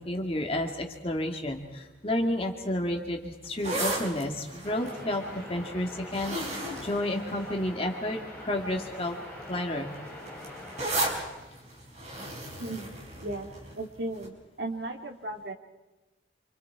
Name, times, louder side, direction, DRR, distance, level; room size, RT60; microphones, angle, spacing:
voice 1, 0.0-6.4 6.8-9.2 9.5-9.9, left 1 dB, 30° left, 2 dB, 2.2 m, -31 dB
sound 1, 3.4-7.9 8.6-8.9 9.2-13.8 14.2-14.3, right 1 dB, 35° right, 4.9 m, -35 dB
sound 2, 4.6-11.2, left 1 dB, 5° left, 5.9 m, -43 dB
voice 2, 12.6-13.5 13.7-15.5, right 2 dB, 65° right, 2 dB, 3.1 m, -36 dB
28.0 x 27.0 x 4.7 m, 1.1 s
head